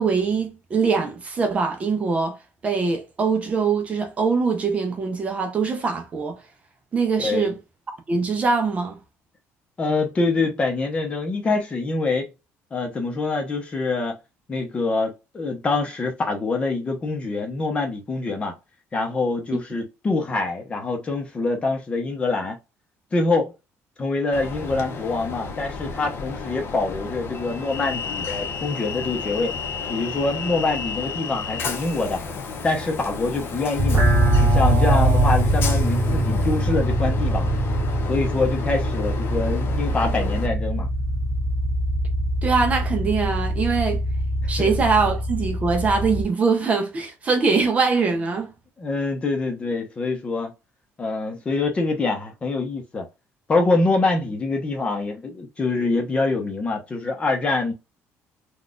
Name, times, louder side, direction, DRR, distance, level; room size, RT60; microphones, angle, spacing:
voice 1, 0.0-2.4 2.6-6.4 6.9-7.6 8.1-9.0 19.5-19.6 42.4-44.0 44.5-48.5, right 4 dB, 25° right, 0.6 m, -22 dB
voice 2, 7.2-7.5 9.8-12.3 12.7-14.2 14.5-18.5 18.9-22.6 23.1-23.5 24.0-29.6 29.9-32.2 32.6-34.0 34.4-37.5 38.1-40.9 44.6-44.7 48.8-50.5 51.0-53.1 53.5-57.7, left 3 dB, 20° left, 0.8 m, -25 dB
Train, 24.3-40.5, left 5 dB, 50° left, 0.7 m, -32 dB
sound 1, 33.8-46.2, right 1 dB, 40° right, 1.9 m, -22 dB
3.9 x 2.4 x 2.4 m
cardioid pair, 165°, 5 cm